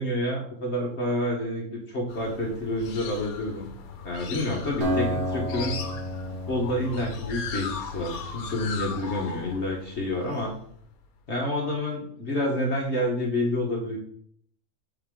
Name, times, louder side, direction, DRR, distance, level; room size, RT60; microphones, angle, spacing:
voice 1, 0.0-3.7 4.0-5.8 6.5-10.5 11.3-14.0, left 1 dB, 50° left, -1 dB, 1.5 m, -28 dB
sound 1, 2.1-11.2, left 5 dB, 75° left, 1.3 m, -38 dB
Acoustic guitar, 4.8-8.4, equal, 75° right, 2.5 m, -31 dB
7.2 x 5.7 x 3.7 m, 0.62 s
omnidirectional pair, 1.6 m